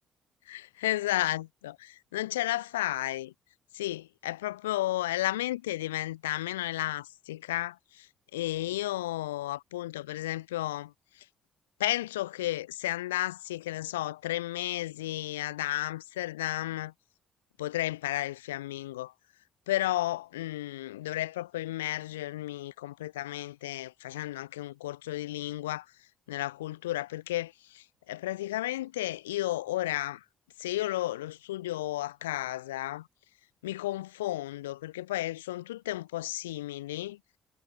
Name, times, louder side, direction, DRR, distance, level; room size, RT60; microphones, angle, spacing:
voice 1, 0.5-3.3 3.7-8.1 8.3-10.9 11.8-16.9 17.6-19.1 19.7-25.8 26.3-30.2 30.6-33.1 33.6-37.2, left 15 dB, 85° left, 1.4 m, -33 dB
hypercardioid pair, 45°, 0 cm